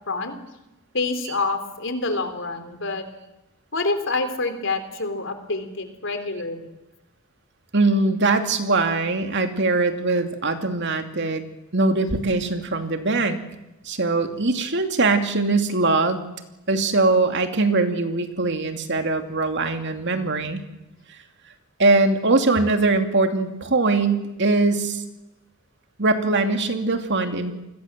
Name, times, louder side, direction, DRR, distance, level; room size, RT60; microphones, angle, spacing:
voice 1, 0.9-3.1 3.7-6.8, left 3 dB, 60° left, 8 dB, 3.7 m, -27 dB
voice 2, 7.7-11.4 11.7-13.4 13.9-16.2 16.7-20.6 21.8-25.0 26.0-27.5, right 3 dB, 55° right, 6 dB, 2.7 m, -21 dB
29.0 x 21.0 x 7.6 m, 0.97 s
head